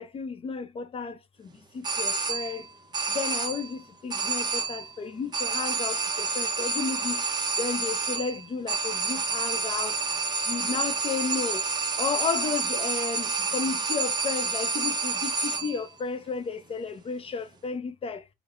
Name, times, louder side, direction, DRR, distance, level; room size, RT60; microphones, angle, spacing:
voice 1, 0.0-1.5 1.7-2.6 3.1-7.2 7.6-9.9 10.5-11.6 12.0-18.2, left 5 dB, 35° left, 0.5 m, -33 dB
sound 1, 1.8-2.7 2.9-3.7 4.1-4.9 5.3-15.9, right 4 dB, 25° right, 0.6 m, -29 dB
4.7 x 2.0 x 2.4 m
cardioid pair, 110°, 17 cm